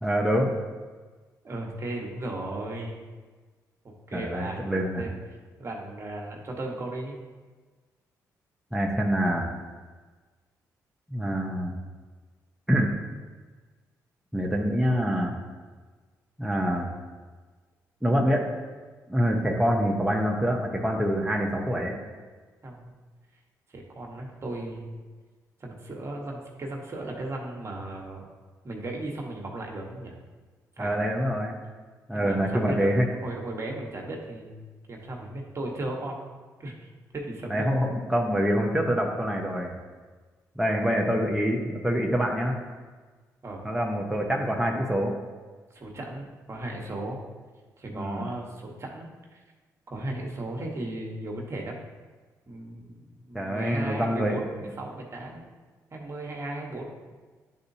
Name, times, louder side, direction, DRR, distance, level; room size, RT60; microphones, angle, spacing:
voice 1, 0.0-0.5 4.1-5.0 8.7-9.5 11.1-11.7 12.7-12.9 14.3-15.3 16.4-16.9 18.0-18.5 19.1-22.0 30.8-31.6 32.1-33.1 37.5-39.8 40.6-42.6 43.6-45.2 47.9-48.2 53.3-54.7, equal, 5° right, -1 dB, 0.8 m, -25 dB
voice 2, 1.4-3.0 4.1-5.1 5.6-7.2 22.6-22.9 23.7-25.0 25.6-28.3 28.6-30.1 30.8-31.1 32.1-32.9 33.2-36.2 36.6-37.6 40.8-41.0 43.4-43.7 45.7-47.2 47.8-49.4 49.9-51.8 52.5-55.4 55.9-56.9, right 2 dB, 40° right, 0 dB, 1.3 m, -36 dB
9.8 x 3.9 x 2.7 m, 1.4 s
supercardioid pair, 65°, 7 cm